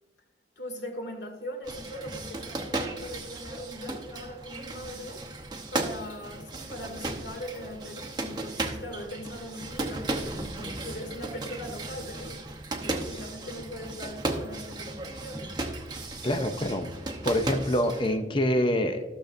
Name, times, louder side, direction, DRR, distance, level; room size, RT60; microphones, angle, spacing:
voice 1, 0.6-5.2 5.7-12.4 12.7-15.6, equal, 70° left, 3 dB, 2.0 m, -40 dB
sound 1, 1.6-18.2, right 2 dB, 25° right, 0.8 m, -35 dB
voice 2, 16.2-16.9 17.2-19.0, equal, 25° left, 6 dB, 0.6 m, -26 dB
14.5 x 6.6 x 2.6 m, 1.2 s
head